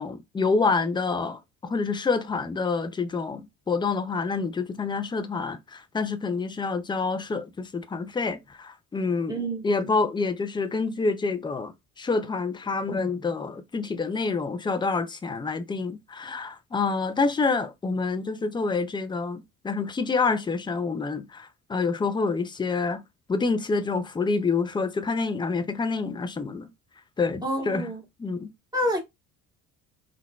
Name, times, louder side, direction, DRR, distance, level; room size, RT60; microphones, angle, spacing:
voice 1, 0.0-9.4 9.6-23.0 23.3-26.7 27.2-27.9 28.2-28.5, left 4 dB, 10° left, 0.4 m, -27 dB
voice 2, 9.3-9.9 27.4-28.0 28.7-29.0, equal, 10° right, 1.4 m, -28 dB
3.6 x 2.2 x 2.3 m
figure-of-eight pair, 50°, 44 cm